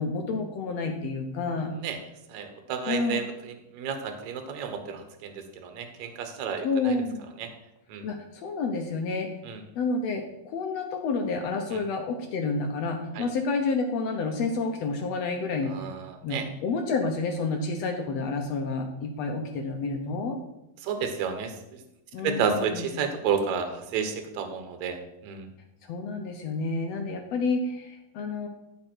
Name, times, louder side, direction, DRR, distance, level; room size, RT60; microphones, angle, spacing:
voice 1, 0.0-1.7 2.9-3.2 6.6-7.2 8.0-9.3 9.7-15.7 16.2-20.4 22.1-22.9 25.9-28.5, left 3 dB, 70° left, 3 dB, 1.6 m, -29 dB
voice 2, 2.3-7.0 7.4-7.5 7.9-8.0 9.4-9.6 13.2-13.3 15.7-16.4 20.8-21.5 22.2-25.0 25.2-25.5, right 6 dB, 65° right, 6 dB, 2.1 m, -31 dB
14.0 x 5.2 x 4.6 m, 0.87 s
omnidirectional pair, 4.1 m